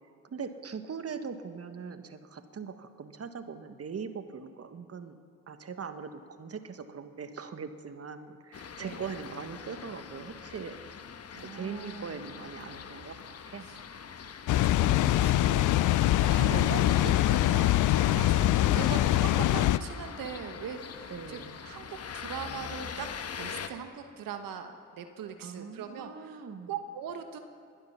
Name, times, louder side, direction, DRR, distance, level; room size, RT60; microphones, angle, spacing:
voice 1, 0.3-5.2 5.5-10.8 11.4-13.2 13.5-13.6 17.9-19.4 21.1-21.5 25.4-26.7, right 6 dB, 40° right, 9 dB, 1.5 m, -41 dB
sound 1, 8.5-23.7, left 6 dB, 40° left, 1.2 m, -42 dB
voice 2, 11.3-12.2 13.6-13.8 14.6-15.7 16.3-18.4 18.7-27.4, right 7 dB, 65° right, 7 dB, 1.2 m, -41 dB
Water, 14.5-19.8, left 14 dB, 55° left, 0.5 m, -24 dB
21.0 x 11.5 x 5.9 m, 2.6 s
hypercardioid pair, 50°, 37 cm